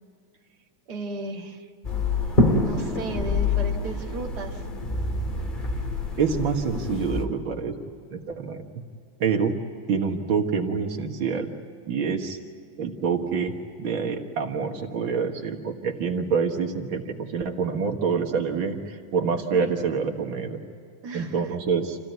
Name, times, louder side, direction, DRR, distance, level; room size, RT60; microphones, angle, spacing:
voice 1, 0.9-1.7 2.6-4.6 19.5-19.7 21.0-21.5, right 2 dB, 55° right, 0 dB, 2.4 m, -35 dB
sound 1, 1.8-7.2, left 2 dB, 25° left, 2.0 m, -26 dB
voice 2, 6.2-7.8 8.1-8.7 9.2-9.6 9.9-11.5 11.9-12.4 12.8-20.6 21.1-22.0, right 5 dB, 85° right, 3 dB, 2.3 m, -26 dB
27.5 x 16.0 x 9.4 m, 2.4 s
omnidirectional pair, 2.1 m